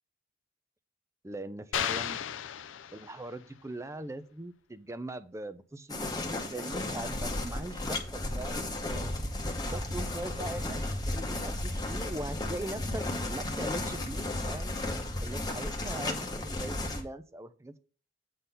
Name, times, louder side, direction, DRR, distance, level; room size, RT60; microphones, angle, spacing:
voice 1, 1.2-2.2 2.9-9.1 9.6-14.8 15.2-17.8, right 1 dB, 15° right, 12 dB, 0.4 m, -41 dB
sound 1, 1.7-3.5, left 9 dB, 80° left, 0.4 m, -34 dB
sound 2, 5.9-17.0, left 1 dB, 20° left, 1.0 m, -34 dB
8.2 x 3.8 x 5.5 m, 0.38 s
head